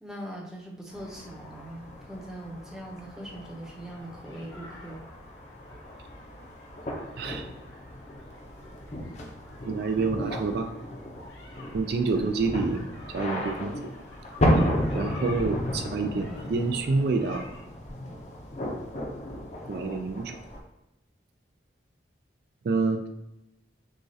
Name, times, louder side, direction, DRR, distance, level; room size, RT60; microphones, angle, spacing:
voice 1, 0.0-5.0 10.2-10.5, right 1 dB, 5° right, -2 dB, 0.6 m, -41 dB
sound 1, 0.9-20.6, equal, 35° left, 0.6 m, -33 dB
sound 2, 3.2-17.6, left 2 dB, 85° left, 1.0 m, -50 dB
voice 2, 9.6-10.7 11.7-12.8 13.1-13.9 14.9-17.4 19.7-20.4 22.6-23.1, right 4 dB, 55° right, 6 dB, 0.3 m, -27 dB
6.2 x 2.3 x 2.7 m, 0.92 s
head